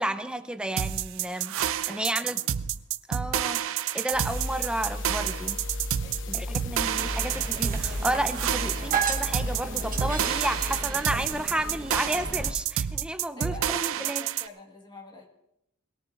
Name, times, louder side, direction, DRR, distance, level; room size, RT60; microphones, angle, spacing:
voice 1, 0.0-1.5 1.9-2.4 3.1-3.6 3.9-5.6 6.3-14.2, right 1 dB, 5° right, 9 dB, 0.7 m, -32 dB
sound 1, 0.8-14.5, right 10 dB, 65° right, 0.5 m, -29 dB
voice 2, 1.9-2.5 6.0-7.2 13.4-15.3, left 2 dB, 20° left, 1 dB, 1.7 m, -48 dB
sound 2, 4.1-10.8, left 2 dB, 60° left, 0.9 m, -35 dB
sound 3, 7.0-12.5, right 5 dB, 40° right, 1.2 m, -34 dB
21.5 x 18.0 x 2.6 m, 0.79 s
head